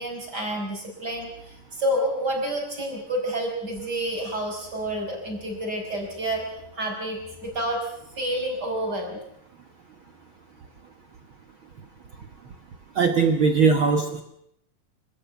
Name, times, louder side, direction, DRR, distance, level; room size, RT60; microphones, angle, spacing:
voice 1, 0.0-6.4 6.7-7.8 8.2-9.2, right 1 dB, 25° right, 2 dB, 5.7 m, -29 dB
voice 2, 12.9-14.2, right 5 dB, 60° right, 6 dB, 1.3 m, -20 dB
25.5 x 15.5 x 8.3 m, 0.76 s
omnidirectional pair, 4.1 m